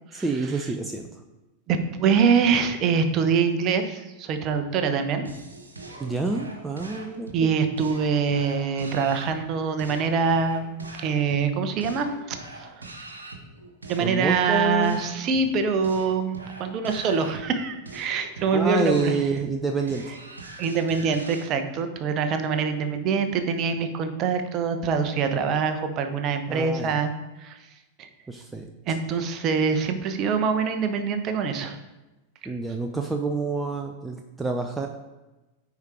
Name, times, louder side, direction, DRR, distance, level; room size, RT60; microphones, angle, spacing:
voice 1, 0.1-1.2 6.0-7.5 14.0-15.0 18.5-20.2 26.5-27.0 28.3-28.7 32.4-34.9, right 3 dB, 10° right, 4 dB, 0.6 m, -28 dB
voice 2, 1.7-5.3 7.3-12.9 13.9-19.2 20.6-27.1 27.4-27.6 28.0-28.1 28.9-31.8, right 5 dB, 35° right, 7 dB, 1.0 m, -24 dB
sound 1, 5.2-21.5, right 3 dB, 75° right, 1.2 m, -43 dB
9.4 x 5.0 x 4.4 m, 1.1 s
figure-of-eight pair, 90°, 0 cm